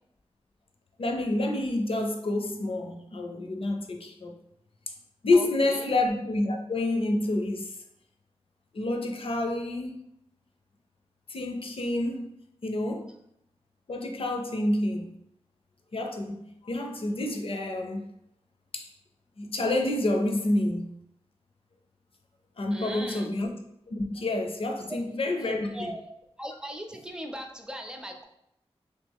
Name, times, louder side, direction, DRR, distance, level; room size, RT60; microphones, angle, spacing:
voice 1, 1.0-4.3 5.2-7.7 8.7-10.0 11.3-12.3 12.6-13.1 13.9-15.1 15.9-18.0 18.7-18.9 19.4-21.0 22.6-23.5 23.9-25.9, left 2 dB, 60° left, 0.5 m, -28 dB
voice 2, 5.3-5.9 22.7-23.3 25.1-26.0 26.4-28.2, equal, 5° right, 0.5 m, -39 dB
3.2 x 2.8 x 3.5 m
wide cardioid pair, 75°, 11 cm